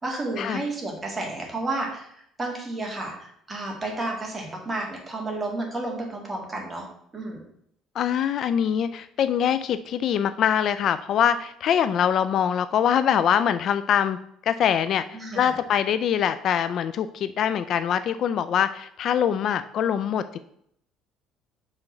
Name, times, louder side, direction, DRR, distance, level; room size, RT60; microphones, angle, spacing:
voice 1, 0.0-2.1 2.4-6.9 7.1-7.4 15.1-15.6, right 2 dB, 15° right, 0 dB, 1.8 m, -31 dB
voice 2, 8.0-14.2 14.4-15.0 15.4-20.4, left 9 dB, 50° left, 12 dB, 0.3 m, -23 dB
5.8 x 3.8 x 5.9 m, 0.70 s
cardioid pair, 135°, 0 cm